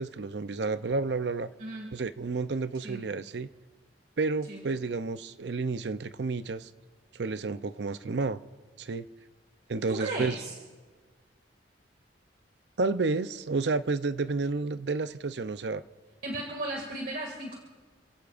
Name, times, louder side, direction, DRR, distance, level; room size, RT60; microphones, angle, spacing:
voice 1, 0.0-1.5 1.9-3.5 4.2-6.7 7.1-8.4 8.8-9.1 9.7-10.4 12.8-15.8, right 3 dB, 80° right, 13 dB, 0.6 m, -30 dB
voice 2, 1.6-1.9 2.8-3.1 4.5-4.6 9.9-10.5 16.2-17.5, right 2 dB, 55° right, 0 dB, 2.3 m, -35 dB
29.5 x 16.5 x 2.5 m, 1.4 s
head